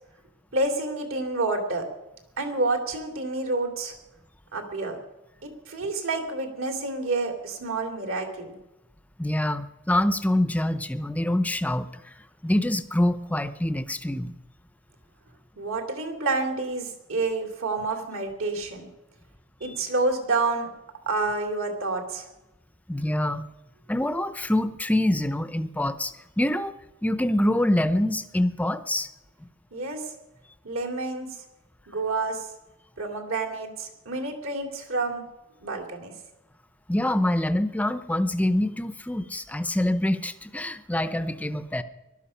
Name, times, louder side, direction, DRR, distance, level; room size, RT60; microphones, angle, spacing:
voice 1, 0.5-1.8 2.4-3.9 4.5-5.0 5.4-8.5 15.6-18.9 19.6-20.7 21.1-22.3 29.7-30.0 30.6-31.3 31.9-32.5 33.0-35.2 35.6-36.1, right 3 dB, 70° right, 4 dB, 2.7 m, -28 dB
voice 2, 9.2-11.9 12.4-14.3 19.6-19.8 22.9-23.4 23.9-26.8 27.0-29.1 36.9-41.8, left 1 dB, 5° left, 12 dB, 0.6 m, -25 dB
18.5 x 12.0 x 5.7 m, 0.96 s
head